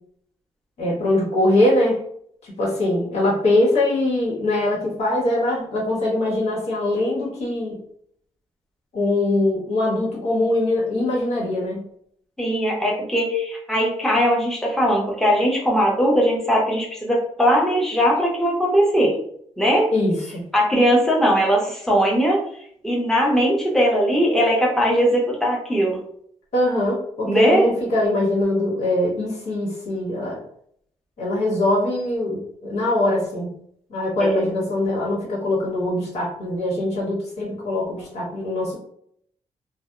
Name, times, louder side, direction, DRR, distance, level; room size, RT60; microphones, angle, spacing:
voice 1, 0.8-2.0 2.4-7.8 8.9-11.8 19.9-20.4 26.5-30.4 31.2-33.5 33.9-38.8, left 1 dB, 75° left, -4 dB, 1.1 m, -22 dB
voice 2, 12.4-19.2 19.6-19.9 20.5-22.4 22.8-26.0 27.2-27.7 34.2-34.4, equal, 5° left, -3 dB, 0.7 m, -19 dB
2.7 x 2.1 x 2.3 m, 0.67 s
cardioid pair, 85°, 11 cm